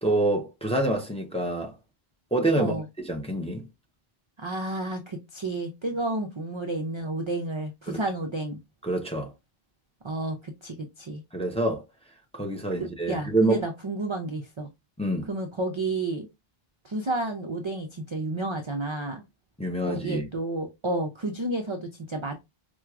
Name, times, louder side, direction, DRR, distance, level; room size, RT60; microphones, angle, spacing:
voice 1, 0.0-1.7 2.3-3.6 7.9-8.0 8.8-9.3 11.3-11.8 12.3-13.6 15.0-15.3 19.6-20.3, right 1 dB, 10° left, 0.5 m, -26 dB
voice 2, 4.4-8.6 10.0-11.2 12.7-14.7 15.3-16.3 16.8-19.2 19.9-22.4, right 2 dB, 45° right, 0.4 m, -31 dB
4.5 x 2.2 x 2.4 m
omnidirectional pair, 1.0 m